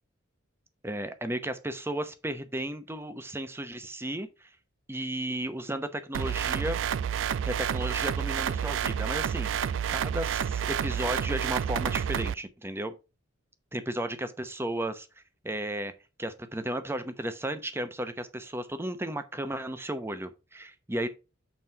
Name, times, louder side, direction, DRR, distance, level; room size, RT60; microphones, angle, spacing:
voice 1, 0.8-4.5 4.9-6.8 7.4-12.9 13.7-15.9 16.2-21.1, right 1 dB, 10° right, 0.8 m, -34 dB
sound 1, 6.1-12.3, right 8 dB, 70° right, 0.3 m, -29 dB
7.6 x 4.2 x 4.6 m
head